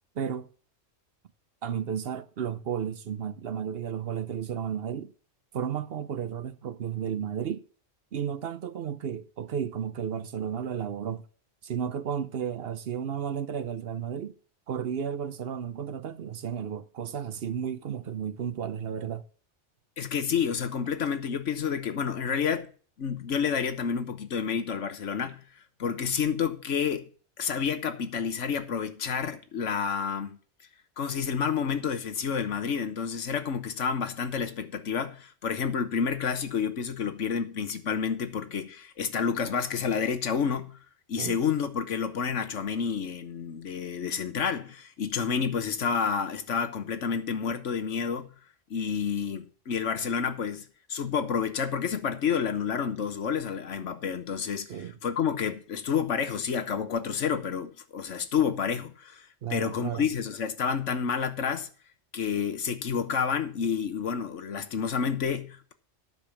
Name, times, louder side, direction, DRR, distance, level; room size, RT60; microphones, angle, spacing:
voice 1, 0.2-0.5 1.6-5.1 5.5-7.6 8.1-11.2 11.6-14.3 14.7-19.2 41.2-41.4 54.7-54.9 59.4-60.1, right 8 dB, 60° right, 0.8 m, -33 dB
voice 2, 20.0-22.7 23.0-25.4 25.8-27.1 27.4-30.4 31.0-40.8 41.1-48.3 48.7-50.6 50.9-54.7 55.0-61.7 62.1-65.7, left 6 dB, 80° left, 1.4 m, -29 dB
9.6 x 6.8 x 5.8 m
omnidirectional pair, 1.2 m